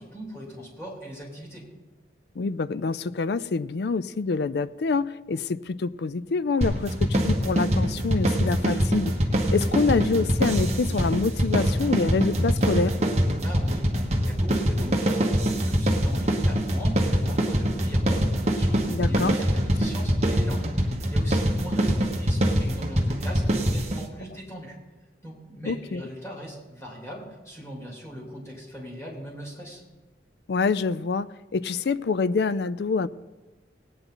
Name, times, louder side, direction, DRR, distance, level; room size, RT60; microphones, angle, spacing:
voice 1, 0.0-1.7 13.4-24.8 25.2-29.8, equal, 15° left, 3.2 m, -40 dB
voice 2, 2.4-9.1 9.5-12.9 18.9-19.4 25.6-26.0 30.5-33.1, left 4 dB, 60° left, 0.4 m, -26 dB
sound 1, 6.6-24.1, equal, 35° right, 1.2 m, -24 dB
19.0 x 9.1 x 3.9 m
head